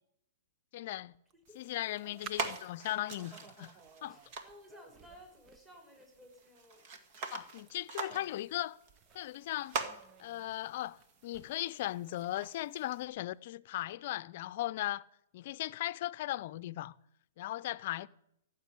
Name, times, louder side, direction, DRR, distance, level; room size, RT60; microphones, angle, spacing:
voice 1, 0.7-1.1 1.5-3.7 4.0-4.2 7.3-8.8 9.1-9.8 10.2-15.1 15.3-16.9 17.4-18.1, left 15 dB, 55° left, 0.6 m, -37 dB
sound 1, 1.3-13.0, right 7 dB, 30° right, 0.8 m, -57 dB
sound 2, 1.4-13.0, right 4 dB, 45° right, 2.1 m, -45 dB
voice 2, 4.1-6.9, equal, 15° right, 5.1 m, -56 dB
15.5 x 7.0 x 10.0 m
hypercardioid pair, 130°, 0 cm